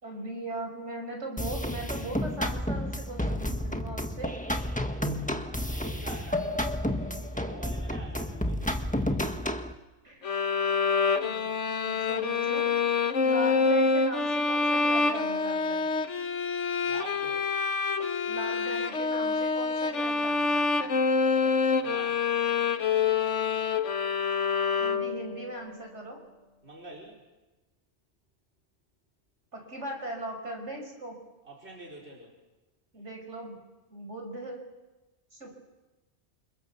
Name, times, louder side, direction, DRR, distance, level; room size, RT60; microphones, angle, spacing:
voice 1, 0.0-4.3 7.4-7.5 10.0-10.2 11.2-11.5 11.8-12.7 13.2-15.9 18.2-21.0 24.8-26.2 29.5-31.2 32.9-33.6 33.9-34.7 35.3-35.6, right 1 dB, 80° right, 2 dB, 6.4 m, -39 dB
sound 1, 1.4-9.7, left 1 dB, 5° left, 1.5 m, -31 dB
voice 2, 5.3-9.6 13.2-13.3 16.8-17.5 21.6-22.4 26.6-27.2 31.4-32.4, right 2 dB, 65° right, 0 dB, 5.1 m, -46 dB
sound 2, 10.2-25.4, left 4 dB, 90° left, 1.6 m, -26 dB
29.0 x 27.5 x 7.3 m, 1.1 s
omnidirectional pair, 1.2 m